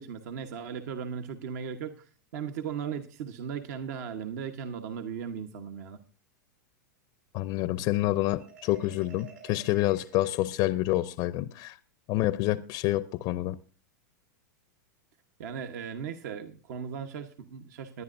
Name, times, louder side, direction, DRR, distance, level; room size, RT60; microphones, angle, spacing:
voice 1, 0.0-6.0 15.4-18.0, right 7 dB, 65° right, 1.1 m, -37 dB
voice 2, 7.3-11.8 12.1-13.6, left 17 dB, 45° left, 0.5 m, -28 dB
Marimba xylophone, 8.4-11.2, right 5 dB, 85° right, 5.4 m, -52 dB
22.0 x 10.0 x 2.6 m
hypercardioid pair, 120°, 10 cm